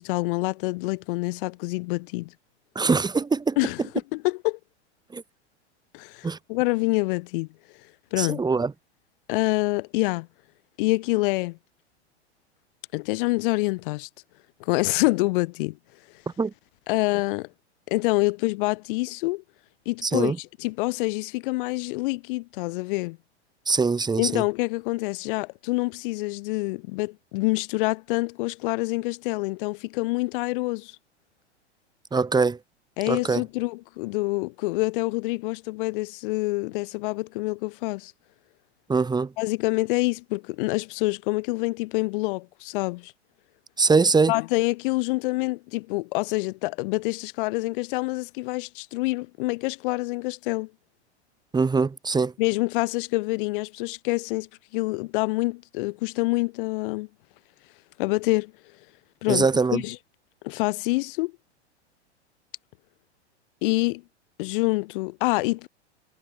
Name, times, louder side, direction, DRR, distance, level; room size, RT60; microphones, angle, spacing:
voice 1, 0.0-2.3 3.6-3.8 4.1-4.6 5.9-7.5 8.1-8.4 9.3-10.3 10.8-11.6 12.9-14.1 14.6-15.8 16.9-17.5 17.9-19.4 19.8-23.2 24.2-31.0 33.0-38.1 39.4-43.1 44.3-50.7 52.4-57.1 58.0-58.5 59.2-59.5 59.7-60.0 60.4-61.3 63.6-64.0 64.4-65.7, left 23 dB, 50° left, 3.5 m, -26 dB
voice 2, 2.8-3.6 5.1-5.2 6.2-6.4 8.2-8.7 16.4-16.5 20.0-20.4 23.7-24.4 32.1-32.6 33.1-33.4 38.9-39.3 43.8-44.3 51.5-52.3 59.3-59.8, right 4 dB, 10° right, 3.7 m, -22 dB
figure-of-eight pair, 100°, 35 cm